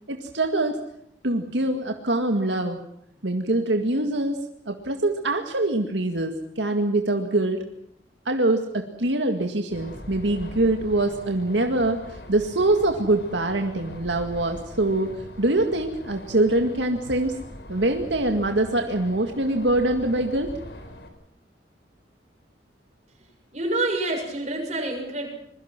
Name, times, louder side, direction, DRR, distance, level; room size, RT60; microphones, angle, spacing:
voice 1, 0.1-0.8 1.2-2.8 3.2-7.7 8.3-17.4 17.7-20.5, right 2 dB, 80° right, 4 dB, 2.0 m, -24 dB
sound 1, 9.7-21.1, left 1 dB, 65° left, 4.5 m, -42 dB
voice 2, 23.5-25.3, right 2 dB, 40° right, 2 dB, 6.9 m, -27 dB
26.0 x 22.5 x 6.1 m, 0.71 s
head